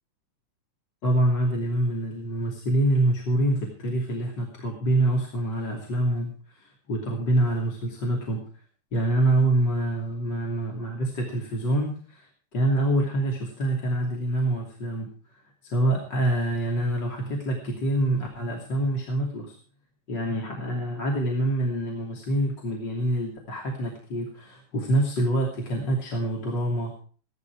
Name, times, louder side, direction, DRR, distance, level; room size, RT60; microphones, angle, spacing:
voice 1, 1.0-8.4 8.9-12.3 12.5-15.1 15.6-19.6 20.1-26.9, right 1 dB, 35° left, -1 dB, 3.4 m, -26 dB
17.0 x 12.0 x 4.7 m, 0.42 s
omnidirectional pair, 3.3 m